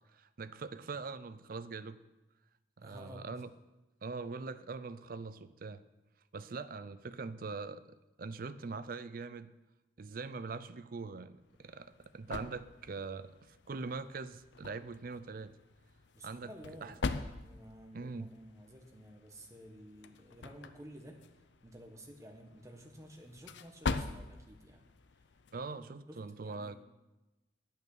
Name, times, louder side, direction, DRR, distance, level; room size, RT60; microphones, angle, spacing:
voice 1, 0.1-2.0 2.8-3.5 4.0-5.8 6.3-7.8 8.2-9.5 10.0-15.6 16.2-16.5 16.8-16.9 17.9-18.3 25.5-26.8, right 4 dB, 50° right, 13 dB, 0.5 m, -42 dB
voice 2, 2.8-3.4 16.1-17.0 17.3-24.8 25.2-25.3 26.1-26.8, equal, 15° right, 2 dB, 1.4 m, -53 dB
sound 1, 11.4-25.9, left 3 dB, 70° left, 0.6 m, -44 dB
9.2 x 8.4 x 6.6 m, 1.0 s
head